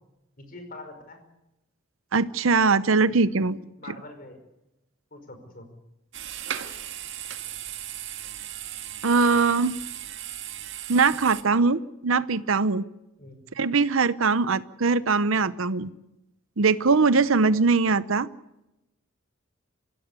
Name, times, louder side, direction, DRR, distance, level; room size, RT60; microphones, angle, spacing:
voice 1, 0.4-1.2 3.8-4.4 5.1-5.7 13.2-13.4, left 2 dB, 45° left, 7 dB, 5.3 m, -43 dB
voice 2, 2.1-3.6 3.9-4.0 9.0-9.8 10.9-12.8 13.6-15.9 16.6-18.3, right 4 dB, 85° right, 15 dB, 0.8 m, -21 dB
sound 1, 6.1-11.4, right 10 dB, 65° right, 1.8 m, -37 dB
25.0 x 16.5 x 8.2 m, 0.94 s
head